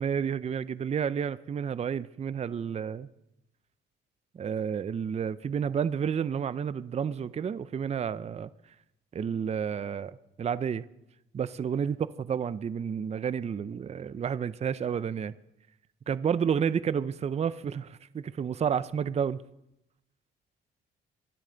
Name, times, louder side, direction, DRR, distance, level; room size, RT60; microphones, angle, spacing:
voice 1, 0.0-3.1 4.3-8.5 9.1-10.8 11.3-15.3 16.1-19.4, right 7 dB, 35° right, 0.5 m, -30 dB
23.5 x 9.0 x 3.9 m
cardioid pair, 90°, 20 cm